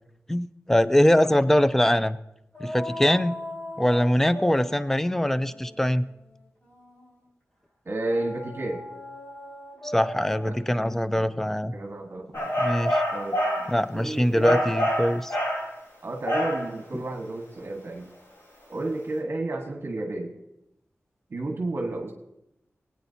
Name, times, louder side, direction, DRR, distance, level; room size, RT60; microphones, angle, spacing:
voice 1, 0.3-2.2 2.6-3.4 3.8-6.1 9.8-11.7 12.6-13.0 13.7-15.4 16.9-17.0, left 1 dB, 5° left, 13 dB, 0.5 m, -23 dB
sound 1, 2.5-7.2 8.0-12.7, left 1 dB, 35° left, 5.0 m, -40 dB
voice 2, 7.8-8.8 10.4-10.5 11.1-12.5 13.1-14.7 16.0-18.1 18.7-20.3 21.3-22.1, right 2 dB, 55° right, 1 dB, 1.5 m, -32 dB
sound 2, 12.3-13.7 14.4-15.7 16.3-16.7, equal, 55° left, 4.1 m, -26 dB
21.0 x 9.1 x 2.8 m, 0.86 s
wide cardioid pair, 95°, 5 cm